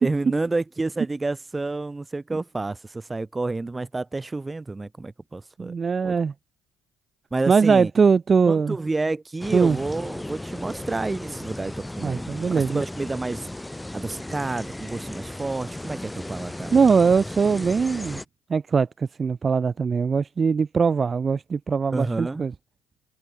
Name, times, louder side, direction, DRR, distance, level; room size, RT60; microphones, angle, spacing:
voice 1, 0.0-5.7 6.0-6.1 7.3-7.9 8.5-13.5 13.9-16.7 21.9-22.5, right 3 dB, 20° right, 1.6 m, -29 dB
voice 2, 5.6-6.3 7.5-8.8 9.5-9.8 12.0-12.8 16.7-18.2 18.5-22.5, right 5 dB, 35° right, 0.9 m, -21 dB
sound 1, 9.4-18.2, left 1 dB, 10° left, 2.7 m, -36 dB
hypercardioid pair, 60°, 0 cm